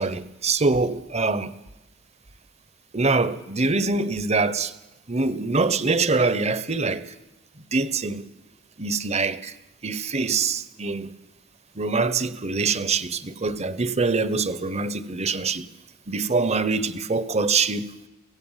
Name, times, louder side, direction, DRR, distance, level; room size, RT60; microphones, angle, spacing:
voice 1, 0.0-1.5 2.9-4.7 5.1-7.1 7.7-8.3 8.8-9.5 9.8-11.1 11.8-15.7 16.1-17.9, right 4 dB, 30° right, 1.0 m, -24 dB
24.5 x 16.5 x 7.4 m
head